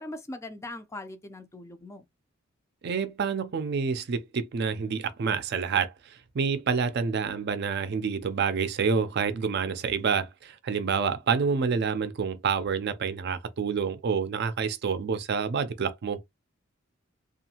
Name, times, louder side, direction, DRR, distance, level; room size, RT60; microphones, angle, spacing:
voice 1, 0.0-2.1, left 1 dB, 15° left, 0.3 m, -40 dB
voice 2, 2.8-16.2, right 6 dB, 55° right, 0.4 m, -28 dB
2.6 x 2.4 x 2.8 m
head